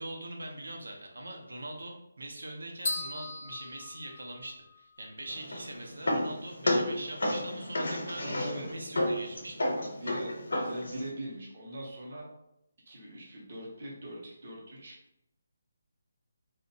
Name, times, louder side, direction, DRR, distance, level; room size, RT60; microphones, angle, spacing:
voice 1, 0.0-8.4 8.7-9.6, right 1 dB, 80° right, 0 dB, 0.5 m, -42 dB
sound 1, 2.9-4.8, left 2 dB, 30° left, 0.5 m, -37 dB
sound 2, 5.3-11.1, left 1 dB, 80° left, 0.7 m, -32 dB
voice 2, 8.2-8.7 9.0-9.1 9.8-12.3 12.9-15.0, right 1 dB, 35° right, -3 dB, 0.6 m, -41 dB
2.7 x 2.1 x 2.6 m, 0.81 s
hypercardioid pair, 180°, 0 cm